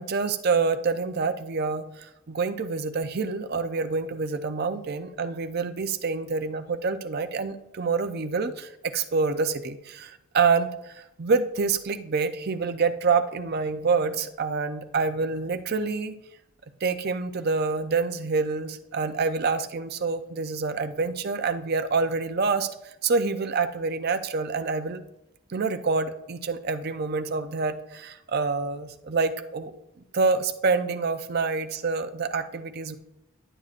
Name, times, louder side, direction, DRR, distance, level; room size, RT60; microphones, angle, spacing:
voice 1, 0.0-16.2 16.8-25.0 25.5-29.7 30.1-33.0, right 4 dB, 45° right, 9 dB, 0.5 m, -27 dB
11.0 x 7.8 x 2.5 m, 0.89 s
head